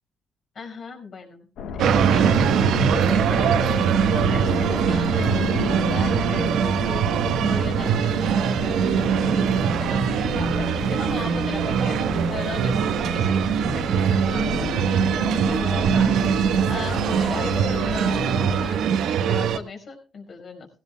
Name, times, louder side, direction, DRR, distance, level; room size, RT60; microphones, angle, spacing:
voice 1, 0.5-1.5 1.7-5.5 5.8-13.4 13.7-20.7, left 4 dB, 50° left, 2 dB, 5.3 m, -37 dB
sound 1, 1.6-18.7, left 6 dB, 85° left, 1.3 m, -32 dB
sound 2, 1.8-19.6, right 7 dB, 85° right, 1.3 m, -22 dB
18.0 x 17.0 x 2.3 m, 0.37 s
cardioid pair, 90°, 0 cm